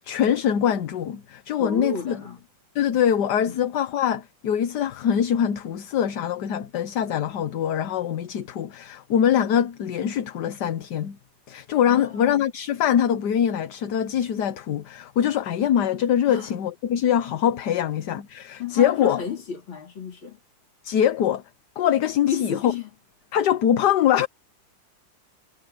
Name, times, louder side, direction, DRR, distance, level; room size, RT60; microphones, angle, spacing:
voice 1, 0.0-2.2 2.7-11.2 11.5-19.3 20.8-21.4 21.8-22.7 23.3-24.3, left 9 dB, 65° left, 1.5 m, -23 dB
voice 2, 1.6-2.4 3.5-3.7 11.9-12.5 16.3-16.5 18.6-20.4 22.3-22.9, left 7 dB, 85° left, 4.0 m, -32 dB
omnidirectional pair, 2.1 m